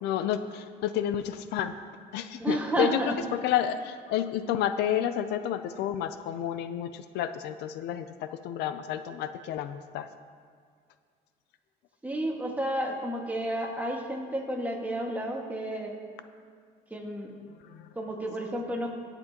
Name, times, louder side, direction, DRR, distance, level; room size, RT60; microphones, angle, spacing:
voice 1, 0.0-1.7 2.1-10.1 17.6-17.9, left 10 dB, 85° left, 11 dB, 0.5 m, -30 dB
voice 2, 2.4-3.1 12.0-15.9 16.9-17.3 17.9-18.9, right 1 dB, 10° right, 0 dB, 1.7 m, -31 dB
20.5 x 7.0 x 2.9 m, 2.1 s
cardioid pair, 110°, 17 cm